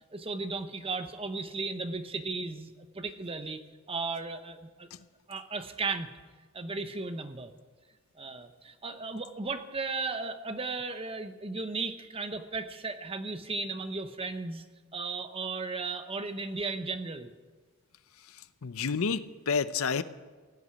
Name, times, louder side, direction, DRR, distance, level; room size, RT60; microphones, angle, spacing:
voice 1, 0.1-3.6 3.9-4.9 5.3-6.1 6.5-7.5 8.2-14.6 14.9-17.3, right 3 dB, 25° right, 9 dB, 0.9 m, -35 dB
voice 2, 18.6-20.0, left 5 dB, 70° left, 14 dB, 0.6 m, -29 dB
17.0 x 8.1 x 9.9 m, 1.4 s
head